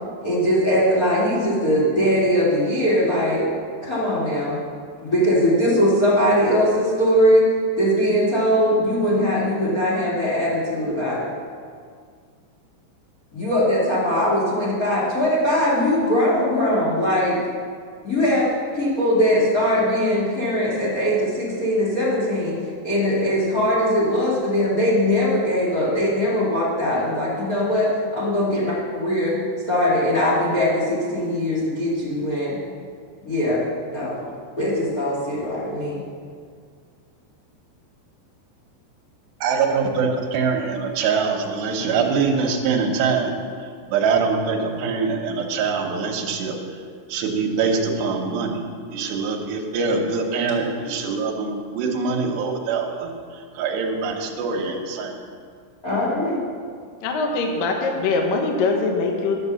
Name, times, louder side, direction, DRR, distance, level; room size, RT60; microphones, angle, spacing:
voice 1, 0.2-3.4 3.8-4.6 5.0-7.5 7.8-11.2 13.3-17.4 18.0-18.5 18.7-22.5 22.8-29.3 29.7-32.6 33.2-33.6 33.9-34.2 34.6-36.0 55.8-56.4, equal, 45° left, -7 dB, 1.1 m, -21 dB
voice 2, 39.4-43.4 43.9-46.6 47.1-48.6 48.9-53.1 53.6-55.1, right 5 dB, 70° right, 1 dB, 2.8 m, -23 dB
voice 3, 57.0-59.4, left 3 dB, 85° left, 3 dB, 1.9 m, -22 dB
11.5 x 6.8 x 6.9 m, 2.1 s
omnidirectional pair, 5.7 m